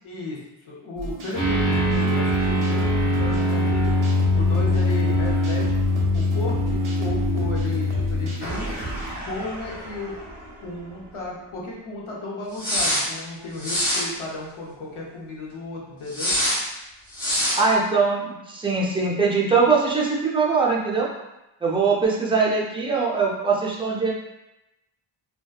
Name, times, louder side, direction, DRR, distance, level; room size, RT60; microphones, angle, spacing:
voice 1, 0.0-0.4 0.7-4.0 4.3-5.7 6.1-8.7 9.2-10.1 10.6-16.3, left 2 dB, 85° left, -4 dB, 0.8 m, -34 dB
sound 1, 1.0-9.1, right 2 dB, 90° right, 0.6 m, -34 dB
sound 2, 1.3-10.5 10.8-10.9 12.6-13.0 13.6-14.0 16.1-16.6 17.1-17.6, left 1 dB, 65° left, 1.4 m, -23 dB
voice 2, 17.6-21.1 21.6-24.1, right 4 dB, 10° right, -4 dB, 0.4 m, -21 dB
2.6 x 2.2 x 2.2 m, 0.95 s
wide cardioid pair, 100°, 48 cm